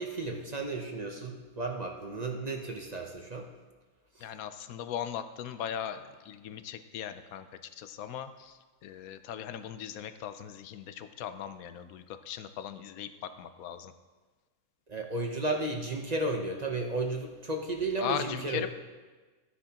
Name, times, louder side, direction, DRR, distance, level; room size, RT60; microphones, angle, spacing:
voice 1, 0.0-3.5 4.1-4.3 14.9-18.7, right 2 dB, 35° right, 2 dB, 0.7 m, -33 dB
voice 2, 4.2-13.9 18.0-18.7, left 9 dB, 75° left, 10 dB, 1.1 m, -39 dB
14.0 x 9.8 x 2.9 m, 1.3 s
omnidirectional pair, 1.5 m